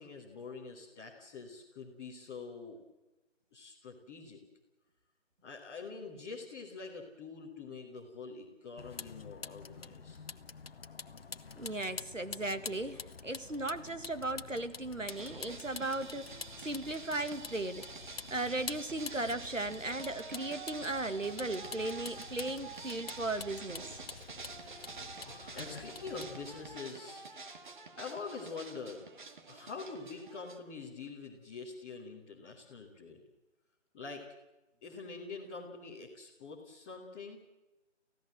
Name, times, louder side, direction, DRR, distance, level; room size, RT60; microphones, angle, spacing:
voice 1, 0.0-2.8 3.5-4.4 5.4-10.2 25.5-27.2 28.0-29.1 29.5-33.2 33.9-34.2 34.8-37.5, left 4 dB, 10° left, -4 dB, 1.7 m, -45 dB
Vehicle, 8.8-26.8, left 5 dB, 50° left, 1.1 m, -47 dB
voice 2, 11.6-23.8, right 2 dB, 90° right, 10 dB, 2.0 m, -37 dB
sound 1, 15.1-30.6, right 4 dB, 40° right, 2.2 m, -48 dB
29.5 x 15.5 x 7.6 m, 1.1 s
figure-of-eight pair, 155°, 37 cm